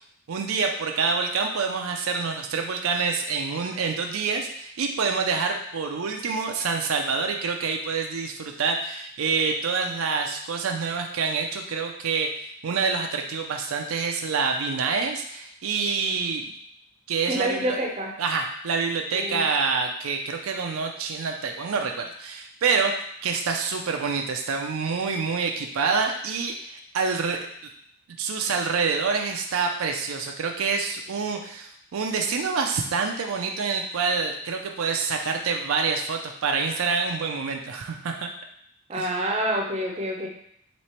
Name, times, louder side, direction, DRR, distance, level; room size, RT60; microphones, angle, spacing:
voice 1, 0.3-16.5 17.1-17.8 18.2-22.9 23.2-27.5 28.2-38.3 38.9-39.1, right 5 dB, 75° right, 3 dB, 0.4 m, -27 dB
voice 2, 17.3-18.1 19.1-19.4 38.9-40.3, right 1 dB, 30° right, 0 dB, 0.6 m, -27 dB
3.1 x 3.0 x 4.3 m, 0.69 s
head